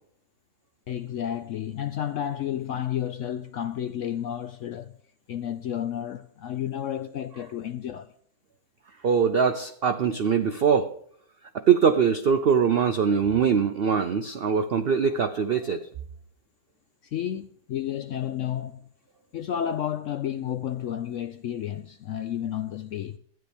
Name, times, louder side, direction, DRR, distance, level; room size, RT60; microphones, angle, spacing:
voice 1, 0.9-4.9 5.3-8.1 17.0-18.9 19.3-23.2, left 10 dB, 75° left, 0.7 m, -31 dB
voice 2, 9.0-10.9 11.5-15.9, right 7 dB, 75° right, 0.5 m, -22 dB
12.5 x 9.8 x 3.5 m
omnidirectional pair, 1.8 m